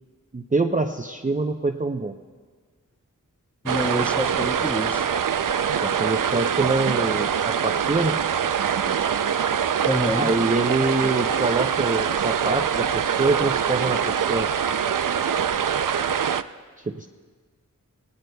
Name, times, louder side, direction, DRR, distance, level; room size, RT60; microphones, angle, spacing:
voice 1, 0.3-2.1 5.8-8.2 10.2-14.5 16.8-17.1, right 3 dB, 25° right, 3 dB, 0.6 m, -25 dB
voice 2, 3.6-5.1 9.9-10.3, equal, 5° left, 5 dB, 0.9 m, -27 dB
sound 1, 3.7-16.4, right 8 dB, 65° right, 0.5 m, -24 dB
27.5 x 17.5 x 2.2 m, 1.6 s
wide cardioid pair, 55°, 34 cm